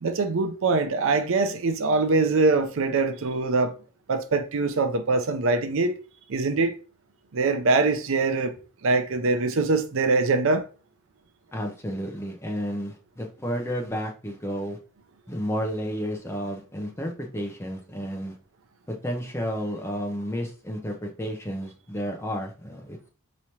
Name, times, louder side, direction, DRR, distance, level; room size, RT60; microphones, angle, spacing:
voice 1, 0.0-3.7 4.1-6.0 6.3-6.7 7.3-8.5 8.8-10.6, right 3 dB, 60° right, 0.5 m, -23 dB
voice 2, 11.5-14.8 15.3-18.4 18.9-23.1, equal, 10° left, 0.6 m, -31 dB
4.7 x 3.1 x 2.8 m
head